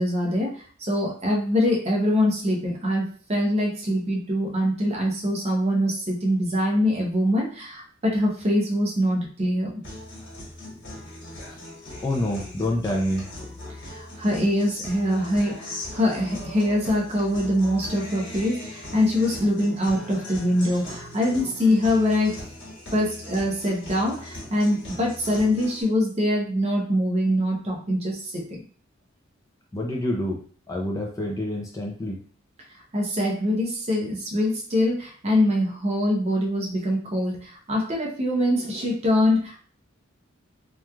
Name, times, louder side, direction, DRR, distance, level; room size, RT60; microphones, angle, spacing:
voice 1, 0.0-9.7 13.8-22.4 22.9-28.6 32.9-39.6, left 1 dB, 30° right, 0 dB, 0.6 m, -24 dB
Guitar, 9.8-25.8, left 1 dB, 60° left, 1.3 m, -39 dB
voice 2, 12.0-13.3 29.7-30.4 30.7-32.2, left 1 dB, 15° left, -1 dB, 0.3 m, -27 dB
2.9 x 2.3 x 2.2 m, 0.43 s
head